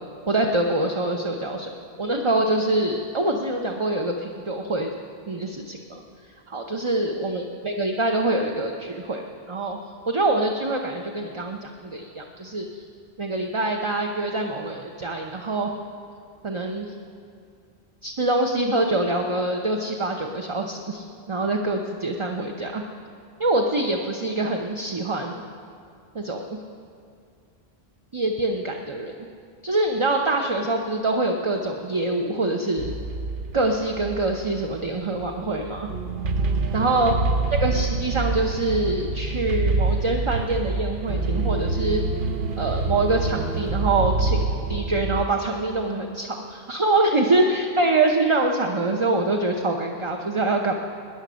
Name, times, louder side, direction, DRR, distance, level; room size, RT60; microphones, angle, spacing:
voice 1, 0.3-1.7 2.0-4.9 5.3-6.0 6.5-9.8 10.1-12.7 13.2-15.7 16.4-16.9 18.0-22.8 23.4-25.4 26.1-26.6 28.1-29.1 29.6-33.0 33.5-35.9 36.7-37.1 37.6-42.0 42.6-50.7, right 2 dB, 30° right, 2 dB, 0.8 m, -25 dB
sound 1, 32.8-45.3, right 3 dB, 60° right, 0.9 m, -26 dB
18.5 x 10.5 x 6.3 m, 2.3 s
omnidirectional pair, 1.0 m